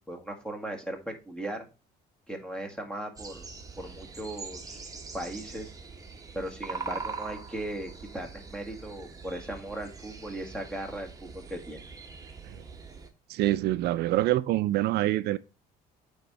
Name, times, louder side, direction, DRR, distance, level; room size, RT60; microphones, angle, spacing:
voice 1, 0.0-1.6 2.3-3.4 3.8-4.8 5.1-5.7 6.3-11.8, right 1 dB, 5° left, 1.7 m, -38 dB
sound 1, 3.2-13.1, right 5 dB, 20° right, 1.2 m, -42 dB
voice 2, 13.3-15.4, right 15 dB, 75° right, 0.4 m, -26 dB
8.5 x 3.6 x 4.0 m
cardioid pair, 110°, 17 cm